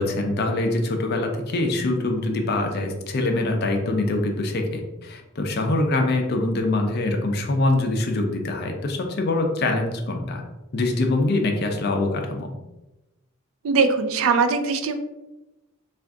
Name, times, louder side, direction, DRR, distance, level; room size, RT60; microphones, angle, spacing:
voice 1, 0.0-10.4 10.7-12.5, left 2 dB, 50° left, 4 dB, 0.5 m, -24 dB
voice 2, 13.6-14.9, right 4 dB, 75° right, 8 dB, 0.4 m, -21 dB
3.4 x 2.5 x 3.6 m, 1.0 s
head